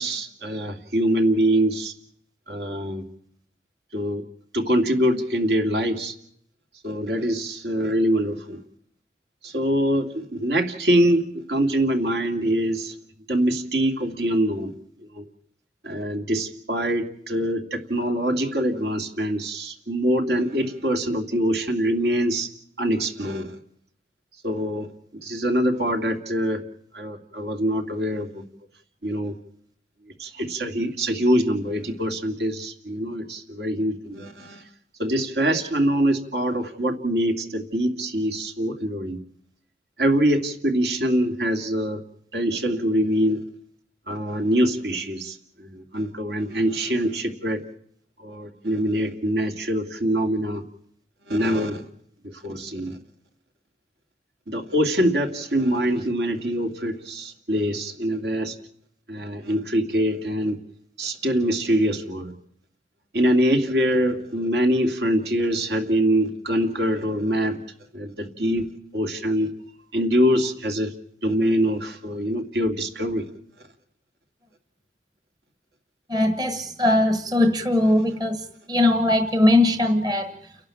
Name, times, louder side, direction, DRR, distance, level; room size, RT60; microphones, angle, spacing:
voice 1, 0.0-1.9 2.5-3.1 3.9-4.3 4.5-6.2 6.8-8.6 9.4-13.0 13.3-14.7 15.1-15.3 15.8-22.5 22.8-23.6 24.4-26.6 26.9-28.4 29.0-29.4 30.2-34.6 35.0-39.2 40.0-42.0 42.3-43.4 44.1-47.6 48.2-50.6 51.3-51.8 52.2-53.0 54.5-58.6 59.1-60.6 61.0-62.3 63.1-67.6 67.9-69.5 69.9-70.9 71.2-73.3, equal, 70° right, 4 dB, 2.5 m, -24 dB
voice 2, 76.1-80.3, left 1 dB, 25° right, 9 dB, 1.2 m, -20 dB
30.0 x 11.5 x 8.6 m, 0.67 s
head